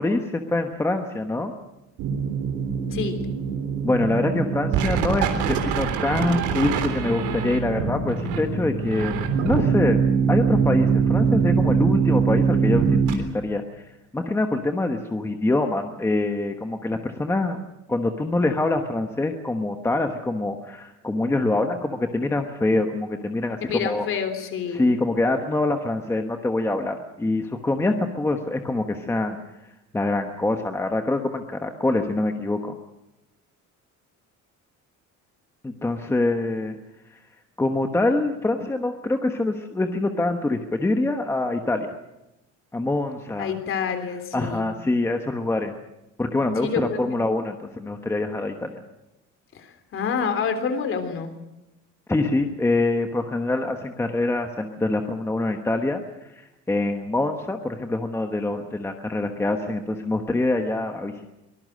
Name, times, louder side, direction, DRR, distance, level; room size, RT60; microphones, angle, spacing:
voice 1, 0.0-1.5 3.8-10.0 10.3-12.8 13.1-13.6 14.1-17.6 17.9-24.1 24.7-29.4 29.9-32.7 35.6-36.8 37.6-42.0 42.7-43.5 44.3-45.7 46.2-48.8 52.1-56.0 56.4-61.3, left 2 dB, 10° left, 5 dB, 1.1 m, -25 dB
sound 1, 2.0-13.1, right 6 dB, 75° right, 3.6 m, -23 dB
voice 2, 23.6-24.8 43.4-44.7 46.6-47.2 49.5-51.3, left 6 dB, 40° left, 7 dB, 3.5 m, -28 dB
24.0 x 19.5 x 6.5 m, 0.94 s
cardioid pair, 170°, 31 cm